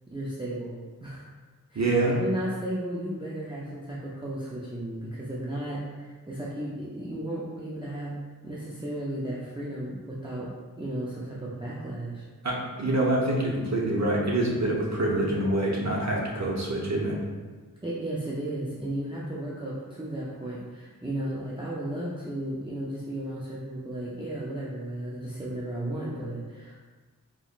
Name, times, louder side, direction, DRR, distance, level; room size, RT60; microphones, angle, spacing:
voice 1, 0.1-1.3 1.7-8.1 8.4-12.2 17.8-26.7, right 1 dB, 15° right, -7 dB, 0.6 m, -34 dB
voice 2, 1.7-2.1 12.4-17.2, right 1 dB, 50° right, -3 dB, 0.9 m, -26 dB
4.2 x 3.0 x 2.5 m, 1.4 s
wide cardioid pair, 50°, 36 cm